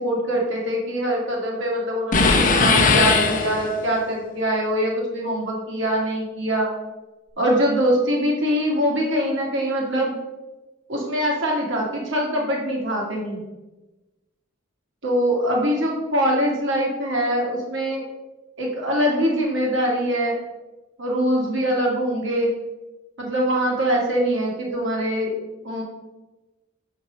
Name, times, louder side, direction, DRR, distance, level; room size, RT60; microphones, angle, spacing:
voice 1, 0.0-6.7 7.4-10.1 10.9-13.4 15.0-18.0 18.6-20.4 21.0-22.5 23.2-25.4 25.6-25.8, equal, 60° right, -2 dB, 2.0 m, -23 dB
sound 1, 2.1-3.9, left 4 dB, 40° left, 0.8 m, -18 dB
7.3 x 4.5 x 5.1 m, 1.1 s
head